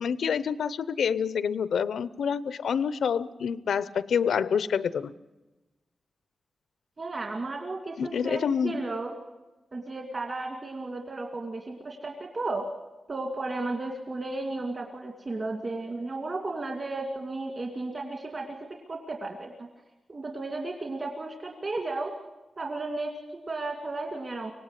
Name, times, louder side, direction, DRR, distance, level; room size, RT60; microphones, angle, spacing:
voice 1, 0.0-5.1 8.0-8.8, left 7 dB, 90° left, 16 dB, 0.7 m, -27 dB
voice 2, 7.0-9.1 9.7-12.7 13.1-18.6 18.9-19.7 20.1-22.1 22.6-24.5, right 2 dB, 40° right, 1 dB, 2.4 m, -34 dB
25.0 x 18.0 x 8.2 m, 1.1 s
wide cardioid pair, 130°, 0 cm